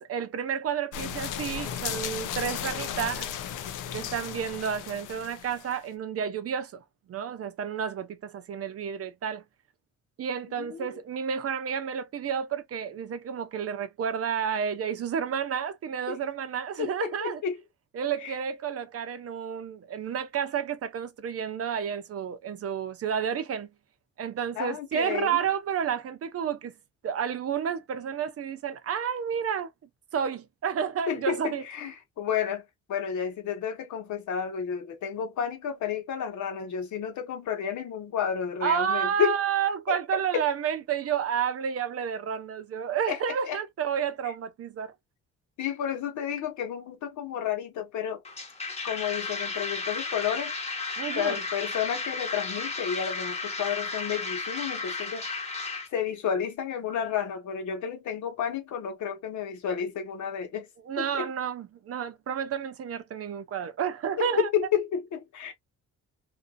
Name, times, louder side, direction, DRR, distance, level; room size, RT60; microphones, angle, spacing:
voice 1, 0.0-3.3 3.9-6.8 7.1-9.4 10.2-17.4 17.9-23.7 24.2-26.7 27.0-29.7 30.1-31.6 38.6-44.9 51.0-51.4 60.9-64.5, right 8 dB, 50° right, 0.6 m, -30 dB
sound 1, 0.9-5.8, left 9 dB, 90° left, 0.7 m, -35 dB
voice 2, 10.6-11.0 16.1-16.2 16.8-17.6 18.2-18.4 24.5-25.4 31.1-39.4 39.9-40.0 40.3-40.4 43.1-43.6 44.2-44.3 45.6-48.2 48.8-50.5 51.1-55.3 55.9-60.7 61.0-61.3 64.2-65.5, left 8 dB, 75° left, 1.2 m, -31 dB
sound 2, 48.2-55.9, left 4 dB, 20° left, 1.0 m, -34 dB
2.7 x 2.6 x 2.5 m
cardioid pair, 90°, 30 cm